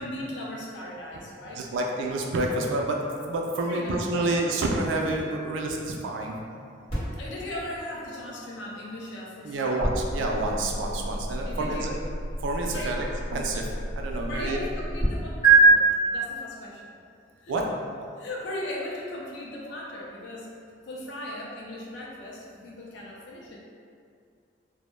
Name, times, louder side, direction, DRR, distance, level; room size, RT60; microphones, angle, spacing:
voice 1, 0.0-1.6 2.0-2.1 3.7-4.3 7.2-9.8 11.4-11.9 12.6-12.9 14.2-16.8 17.4-17.5 18.2-20.5 20.9-23.6, left 1 dB, 70° left, -3 dB, 0.3 m, -38 dB
voice 2, 1.5-3.0 3.3-6.4 9.4-12.0 12.4-13.0 13.3-14.6 17.5-17.7, right 2 dB, 85° right, 0 dB, 0.3 m, -28 dB
sound 1, 6.9-15.1 15.4-15.6, right 5 dB, 30° left, 1.0 m, -28 dB
2.1 x 2.0 x 3.0 m, 2.3 s
head